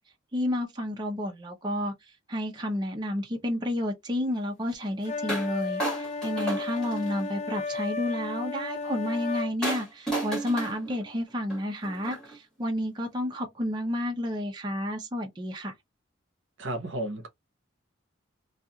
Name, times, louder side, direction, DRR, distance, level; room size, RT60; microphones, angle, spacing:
voice 1, 0.3-1.9 2.3-15.7, left 1 dB, 25° right, 0.6 m, -31 dB
sound 1, 5.0-9.5, left 4 dB, 35° left, 0.5 m, -34 dB
sound 2, 5.3-5.5 5.8-7.3 9.6-12.4, right 2 dB, 5° left, 1.3 m, -33 dB
voice 2, 16.6-17.3, right 1 dB, 75° right, 0.7 m, -32 dB
2.4 x 2.3 x 2.7 m
head